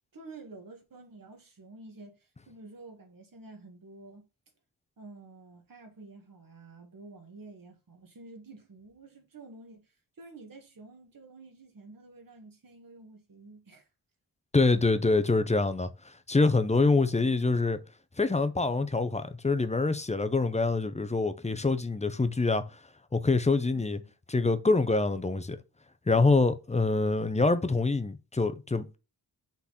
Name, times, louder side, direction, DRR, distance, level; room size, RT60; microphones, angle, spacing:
voice 1, 0.1-4.3 5.0-13.9 23.6-24.1, right 3 dB, 55° right, 2.0 m, -50 dB
voice 2, 14.5-17.8 18.2-22.8 23.1-24.0 24.3-25.6 26.1-29.0, left 3 dB, 15° left, 0.6 m, -25 dB
6.1 x 4.0 x 4.2 m
wide cardioid pair, 145°, 41 cm